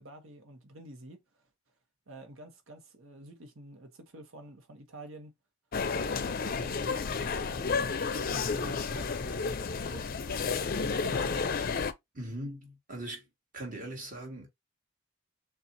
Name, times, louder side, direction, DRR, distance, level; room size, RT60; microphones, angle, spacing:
voice 1, 0.0-1.4 2.1-5.3 5.9-11.7, right 1 dB, 75° right, 1.1 m, -49 dB
sound 1, 5.7-11.9, left 5 dB, 45° left, 0.5 m, -31 dB
voice 2, 12.1-13.3 13.5-14.5, right 1 dB, 40° right, 2.0 m, -40 dB
6.7 x 2.4 x 2.8 m
head